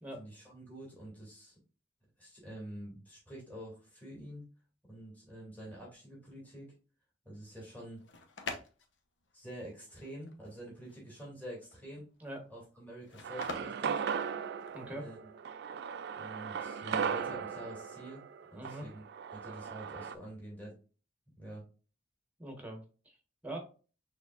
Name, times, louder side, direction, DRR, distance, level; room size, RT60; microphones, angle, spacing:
voice 1, 0.2-1.6 2.2-4.4 4.9-6.7 7.2-8.0 9.3-12.1 12.5-14.0 14.9-15.3 16.2-18.2 18.5-19.0 19.3-20.7 21.4-21.6, equal, 10° left, -5 dB, 2.5 m, -47 dB
sound 1, 7.8-14.9, left 3 dB, 80° left, 0.8 m, -46 dB
sound 2, 13.2-20.1, right 7 dB, 65° right, 0.3 m, -37 dB
voice 2, 14.7-15.0 18.5-18.9 22.4-23.2 23.4-23.6, right 1 dB, 10° right, 2 dB, 1.3 m, -42 dB
6.3 x 3.5 x 2.4 m, 0.35 s
head